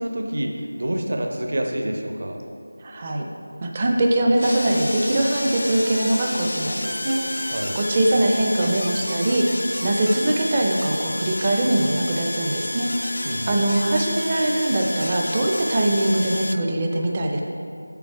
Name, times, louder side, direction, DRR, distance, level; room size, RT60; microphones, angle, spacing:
voice 1, 0.0-2.4 7.5-7.8 13.3-13.6, right 1 dB, 50° right, 2 dB, 0.8 m, -27 dB
voice 2, 2.8-3.2 3.6-17.4, right 1 dB, 20° right, 1 dB, 0.5 m, -22 dB
sound 1, 4.4-16.6, left 1 dB, 55° left, 0.4 m, -30 dB
6.9 x 6.1 x 4.6 m, 2.4 s
figure-of-eight pair, 175°, 0 cm